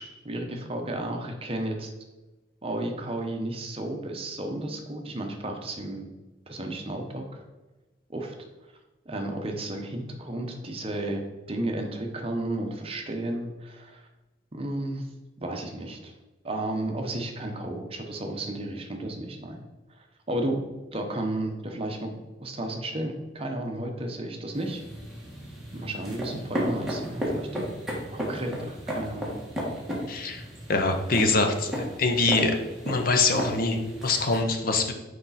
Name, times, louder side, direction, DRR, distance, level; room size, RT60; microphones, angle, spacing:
voice 1, 0.0-1.9 2.6-6.1 6.5-7.4 8.1-8.3 9.1-14.1 14.5-15.1 15.4-16.1 16.4-19.6 20.3-20.6 20.9-22.1 22.4-24.8 25.7-27.7 28.1-29.3, right 1 dB, 30° right, 3 dB, 0.8 m, -33 dB
sound 1, 24.5-34.4, equal, ahead, 1.6 m, -34 dB
voice 2, 30.1-30.4 30.7-31.7 32.0-32.6 32.8-34.9, left 3 dB, 50° left, 5 dB, 0.7 m, -24 dB
6.4 x 4.9 x 4.1 m, 1.1 s
head